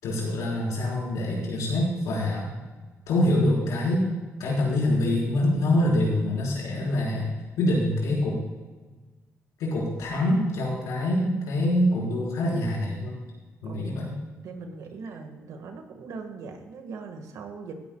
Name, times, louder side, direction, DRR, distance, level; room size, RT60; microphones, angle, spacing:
voice 1, 0.0-2.6 3.1-4.1 4.4-7.3 7.6-8.4 9.6-13.1 13.6-14.2, left 1 dB, 90° left, -4 dB, 4.5 m, -25 dB
voice 2, 14.4-17.8, right 4 dB, 80° right, 5 dB, 1.7 m, -40 dB
16.5 x 13.0 x 2.4 m, 1.3 s
cardioid pair, 70°, 6 cm